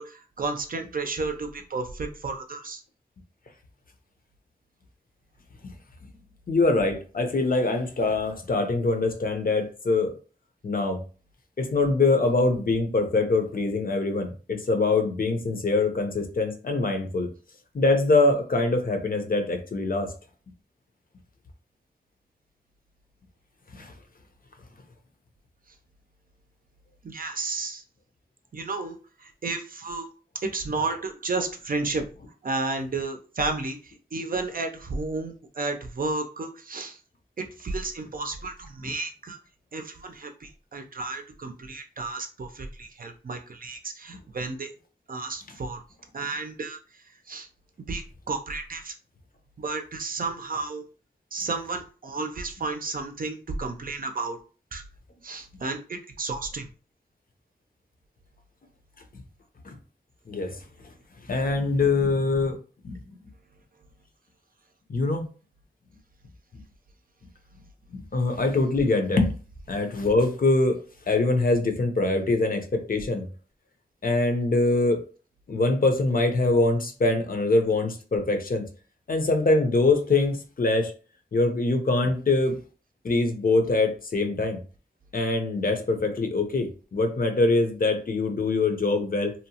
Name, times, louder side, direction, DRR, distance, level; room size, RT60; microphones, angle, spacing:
voice 1, 0.0-2.8 27.0-27.8 28.5-30.1 30.4-32.1 32.4-37.0 37.4-39.4 39.7-44.7 45.1-45.8 46.1-46.8 47.3-47.5 47.9-48.9 49.6-50.8 51.3-54.4 54.7-54.8 55.2-56.7, right 3 dB, 55° right, 6 dB, 0.5 m, -32 dB
voice 2, 6.5-10.1 10.6-11.0 11.6-17.3 17.7-20.1 23.7-23.9 59.6-59.7 60.3-60.6 61.3-62.6 62.8-63.0 64.9-65.2 67.9-69.4 69.7-70.8 71.1-73.2 74.0-75.0 75.5-78.6 79.1-80.9 81.3-82.6 83.0-84.6 85.1-89.3, left 3 dB, 55° left, 5 dB, 0.6 m, -23 dB
2.7 x 2.0 x 2.8 m, 0.37 s
wide cardioid pair, 65°, 17 cm